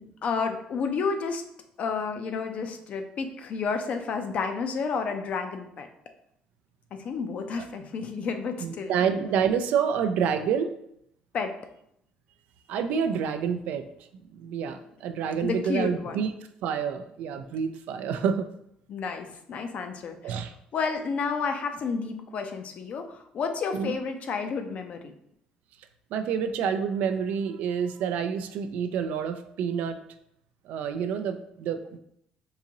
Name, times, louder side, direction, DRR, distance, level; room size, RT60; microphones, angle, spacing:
voice 1, 0.2-1.4 1.8-5.9 6.9-8.9 11.3-11.5 15.4-16.3 18.9-20.4 20.7-25.1, left 5 dB, 55° left, 7 dB, 0.5 m, -31 dB
voice 2, 8.6-10.7 12.7-13.9 14.3-16.3 16.6-18.5 20.2-20.5 23.7-23.9 26.1-30.0 30.7-32.0, right 7 dB, 80° right, 9 dB, 0.3 m, -28 dB
3.8 x 2.6 x 2.9 m, 0.74 s
cardioid pair, 90°, 3 cm